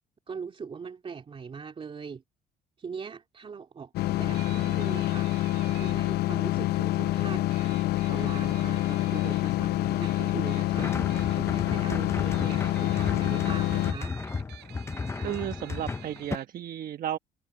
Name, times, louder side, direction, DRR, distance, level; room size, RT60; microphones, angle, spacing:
voice 1, 0.3-2.2 2.8-5.3 5.8-7.4 8.1-10.9 11.4-14.1, right 5 dB, 35° right, 2.7 m, -40 dB
sound 1, 3.9-13.9, left 16 dB, 70° left, 0.6 m, -27 dB
sound 2, 4.3-5.9 7.5-9.6 10.0-11.4 12.2-16.5, right 17 dB, 80° right, 4.2 m, -49 dB
sound 3, 10.7-16.4, left 4 dB, 15° left, 0.5 m, -34 dB
voice 2, 15.1-17.2, right 11 dB, 55° right, 1.2 m, -34 dB
cardioid pair, 110°, 17 cm